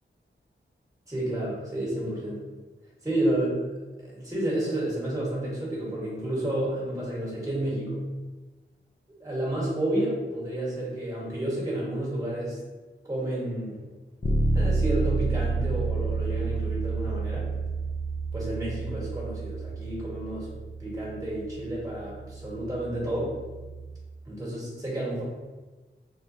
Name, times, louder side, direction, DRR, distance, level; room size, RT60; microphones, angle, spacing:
voice 1, 1.1-2.4 3.0-3.5 4.0-8.0 9.2-12.6 13.0-13.8 14.5-17.5 18.3-20.5 20.8-23.3 24.2-25.2, right 1 dB, 15° right, -6 dB, 1.2 m, -30 dB
Bass guitar, 14.2-24.0, right 3 dB, 25° left, 0.3 m, -30 dB
3.8 x 2.1 x 2.6 m, 1.2 s
wide cardioid pair, 80°, 21 cm